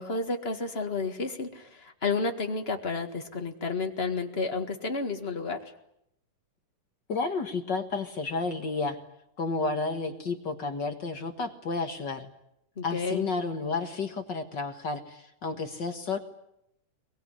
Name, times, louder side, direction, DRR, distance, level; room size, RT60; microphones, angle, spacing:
voice 1, 0.0-5.6 12.8-13.3, left 4 dB, 30° left, 5 dB, 1.2 m, -31 dB
voice 2, 7.1-9.0 9.4-12.3 12.8-16.2, left 4 dB, 45° left, 6 dB, 1.6 m, -31 dB
23.0 x 23.0 x 10.0 m, 0.80 s
omnidirectional pair, 3.8 m